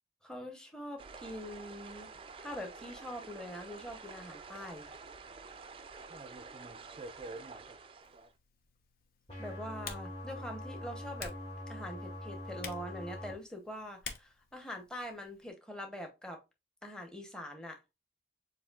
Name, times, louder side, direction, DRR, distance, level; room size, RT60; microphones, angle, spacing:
voice 1, 0.2-2.1 2.4-4.9 9.4-11.3 11.7-16.4 16.8-17.8, equal, 5° left, 0.8 m, -44 dB
sound 1, 1.0-8.3, right 4 dB, 30° right, 0.3 m, -48 dB
Typing, 8.0-15.5, left 5 dB, 55° left, 0.8 m, -51 dB
sound 2, 9.3-13.3, left 1 dB, 35° left, 1.8 m, -43 dB
7.0 x 2.6 x 2.3 m
head